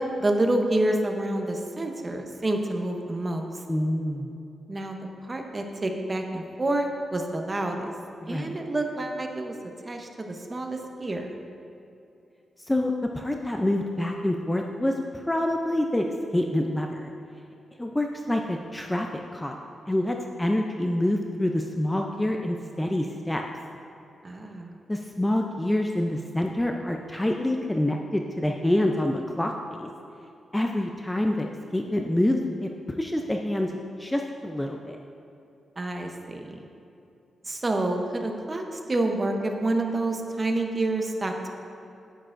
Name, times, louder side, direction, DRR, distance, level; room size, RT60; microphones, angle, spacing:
voice 1, 0.0-3.5 4.7-7.9 8.3-9.6 9.9-11.4 24.2-24.8 35.8-36.7 37.4-41.5, right 2 dB, 25° right, 3 dB, 0.7 m, -28 dB
voice 2, 3.7-4.3 8.2-8.6 12.7-14.9 15.3-16.1 16.3-17.1 17.8-19.1 19.3-19.6 19.9-23.4 24.9-29.9 30.5-31.5 31.7-32.7 33.0-33.7 34.0-35.0, left 1 dB, 10° left, 2 dB, 0.4 m, -26 dB
10.0 x 8.8 x 2.5 m, 2.7 s
wide cardioid pair, 130°, 0 cm